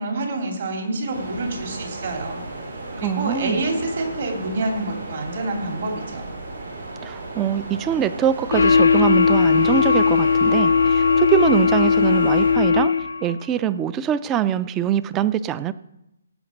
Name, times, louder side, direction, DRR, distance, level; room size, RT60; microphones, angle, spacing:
voice 1, 0.0-2.4 3.0-6.3, right 2 dB, 55° right, 1 dB, 3.1 m, -27 dB
sound 1, 1.1-12.5, right 2 dB, 80° right, 5.2 m, -35 dB
voice 2, 3.0-3.6 7.0-12.9 13.2-15.7, right 9 dB, 15° right, 16 dB, 0.3 m, -23 dB
sound 2, 8.5-13.3, left 6 dB, 85° left, 0.4 m, -18 dB
17.0 x 5.9 x 5.3 m, 0.87 s
hypercardioid pair, 170°, 0 cm